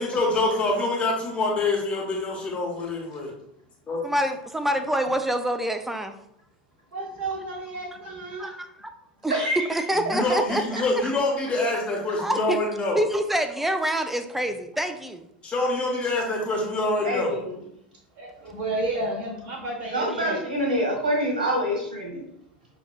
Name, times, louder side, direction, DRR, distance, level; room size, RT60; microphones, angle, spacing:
voice 1, 0.0-3.3 3.9-4.0 10.1-13.0 15.4-17.3, left 2 dB, 25° left, -2 dB, 1.3 m, -25 dB
voice 2, 4.0-6.2 8.4-8.9 9.2-11.2 12.2-12.6 12.9-15.3 20.1-20.2, right 1 dB, 5° right, 7 dB, 0.4 m, -27 dB
voice 3, 6.9-8.5 18.2-20.4, right 2 dB, 40° right, -1 dB, 1.1 m, -31 dB
voice 4, 9.3-9.7 17.0-17.6 19.9-22.3, equal, 65° right, -2 dB, 1.4 m, -26 dB
5.8 x 2.6 x 2.4 m, 0.76 s
figure-of-eight pair, 80°, 5 cm